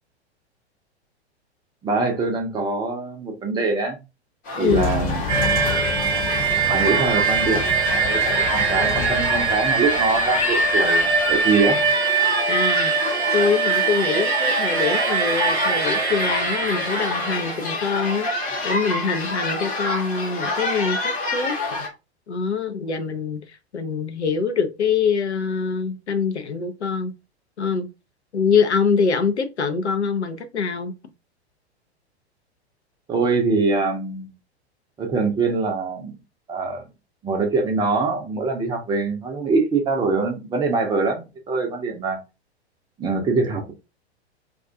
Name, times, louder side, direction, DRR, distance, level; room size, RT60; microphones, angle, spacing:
voice 1, 1.8-4.0 4.6-5.4 6.6-7.8 8.1-11.8 33.1-34.3 35.0-36.1 36.5-36.8 37.2-42.2 43.0-43.7, right 3 dB, 15° right, 0.5 m, -23 dB
sound 1, 4.5-21.9, left 2 dB, 25° left, 0.8 m, -28 dB
voice 2, 4.6-5.0 12.5-12.9 13.3-18.3 18.6-21.9 22.3-23.4 23.7-27.1 27.6-27.9 28.3-30.9, left 5 dB, 85° left, 0.5 m, -24 dB
sound 2, 4.7-11.9, left 5 dB, 55° left, 0.9 m, -31 dB
sound 3, 5.3-17.7, right 5 dB, 75° right, 0.7 m, -22 dB
2.4 x 2.2 x 2.6 m
figure-of-eight pair, 100°, 33 cm